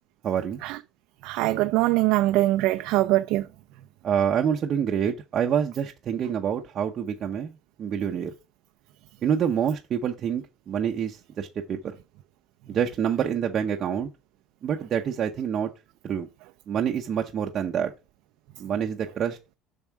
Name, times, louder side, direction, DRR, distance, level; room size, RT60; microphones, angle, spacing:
voice 1, 0.2-0.6 4.0-7.5 7.8-8.3 9.2-11.8 12.7-14.1 14.6-15.7 16.0-16.3 16.7-17.9 18.6-19.4, right 8 dB, 30° right, 0.7 m, -27 dB
voice 2, 1.2-3.4, right 17 dB, 65° right, 0.5 m, -22 dB
7.2 x 6.3 x 4.6 m
cardioid pair, 175°, 0 cm